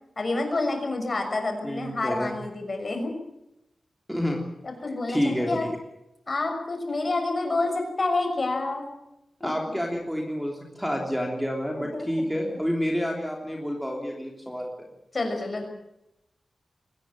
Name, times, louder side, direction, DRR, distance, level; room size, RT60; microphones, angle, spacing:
voice 1, 0.2-3.1 4.6-5.7 6.3-8.9 9.4-9.8 11.7-12.2 15.1-15.7, left 2 dB, 35° left, 4 dB, 6.3 m, -28 dB
voice 2, 1.6-2.4 4.1-4.4 5.1-5.7 9.4-14.9, equal, ahead, 1 dB, 3.3 m, -29 dB
23.0 x 19.0 x 7.7 m, 0.87 s
wide cardioid pair, 160°, 0 cm